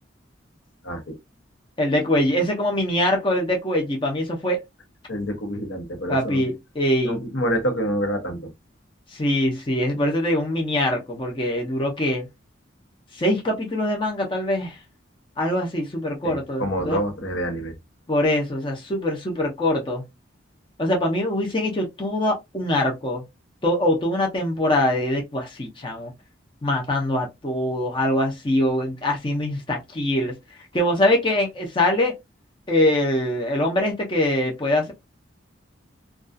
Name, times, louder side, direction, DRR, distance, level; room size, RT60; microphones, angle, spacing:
voice 1, 0.8-1.2 5.1-6.4 7.0-8.5 16.2-17.8, equal, 80° left, 0.8 m, -27 dB
voice 2, 1.8-4.6 6.1-7.2 9.1-12.3 13.1-14.8 15.4-17.0 18.1-20.0 20.8-23.2 23.6-26.1 26.6-30.4 30.7-32.1 32.7-34.9, left 1 dB, 25° left, 0.5 m, -23 dB
2.3 x 2.3 x 2.5 m
head